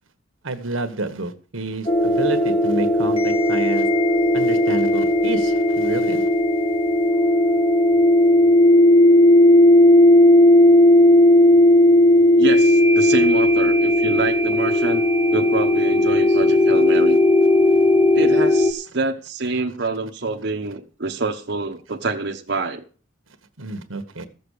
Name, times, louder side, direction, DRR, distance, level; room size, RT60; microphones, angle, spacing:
voice 1, 0.4-3.9 4.3-6.3 23.6-24.3, right 2 dB, 85° right, 1.5 m, -29 dB
sound 1, 1.9-18.7, left 1 dB, 25° left, 1.3 m, -15 dB
voice 2, 12.4-15.0 15.3-17.2 18.1-22.8, right 3 dB, 55° right, 1.0 m, -26 dB
14.5 x 7.0 x 6.6 m
head